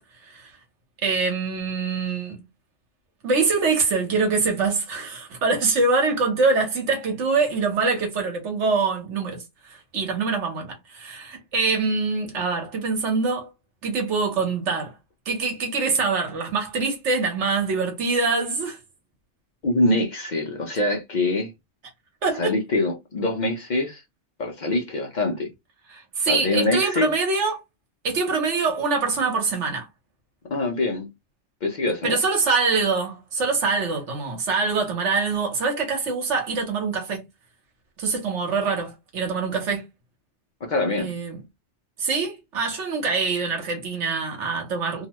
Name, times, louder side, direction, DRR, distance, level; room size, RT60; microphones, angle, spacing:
voice 1, 1.0-2.4 3.2-13.5 13.8-14.9 15.3-18.8 22.2-22.5 25.9-27.6 28.0-29.9 32.0-37.2 38.0-39.8 41.0-41.4 42.0-45.1, right 4 dB, 85° right, 1.3 m, -24 dB
voice 2, 19.6-21.5 22.4-24.0 24.4-25.5 26.3-27.1 30.5-31.1 31.6-32.2 40.6-41.1, left 2 dB, 50° left, 0.6 m, -24 dB
2.8 x 2.1 x 2.9 m
omnidirectional pair, 1.2 m